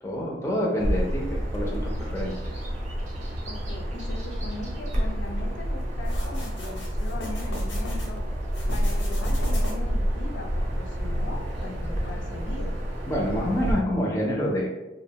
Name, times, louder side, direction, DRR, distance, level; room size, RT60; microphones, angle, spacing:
voice 1, 0.0-2.6 13.1-14.7, equal, 15° left, -2 dB, 0.4 m, -27 dB
Bird vocalization bird call bird song, 0.8-13.7, equal, 35° right, 0.6 m, -29 dB
Motor vehicle (road), 0.8-13.8, equal, 85° right, 0.4 m, -38 dB
voice 2, 3.5-8.2 8.7-12.8, left 2 dB, 75° left, 2 dB, 0.4 m, -39 dB
sound 1, 6.0-8.1 8.5-10.0, left 1 dB, 90° left, 0.8 m, -39 dB
2.5 x 2.1 x 2.8 m, 0.97 s
head